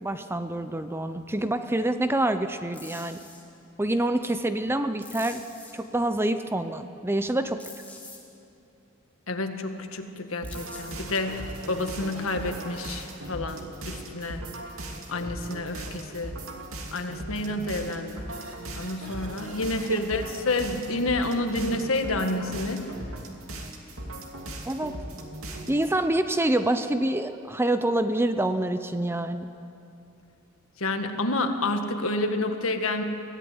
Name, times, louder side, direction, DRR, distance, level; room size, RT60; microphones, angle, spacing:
voice 1, 0.0-3.2 3.8-5.4 5.7-7.6 19.9-20.0 24.7-25.0 25.7-29.5, right 1 dB, 10° right, 9 dB, 0.7 m, -26 dB
sound 1, 2.7-3.4 5.0-5.7 7.6-8.2 10.4-11.0, left 3 dB, 10° left, 3.3 m, -45 dB
voice 2, 9.3-14.4 15.1-16.4 16.9-18.2 18.7-22.9 30.8-33.0, left 2 dB, 70° left, 6 dB, 1.7 m, -29 dB
sound 2, 10.4-26.0, right 1 dB, 70° right, 2.6 m, -38 dB
23.0 x 16.0 x 9.6 m, 2.7 s
head